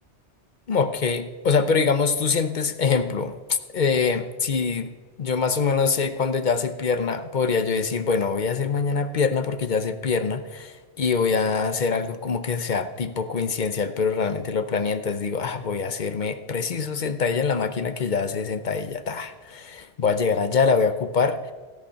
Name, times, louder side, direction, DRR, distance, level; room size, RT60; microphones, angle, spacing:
voice 1, 0.7-3.4 3.7-21.4, left 5 dB, 45° left, 11 dB, 0.8 m, -24 dB
16.5 x 8.8 x 5.8 m, 1.4 s
omnidirectional pair, 1.2 m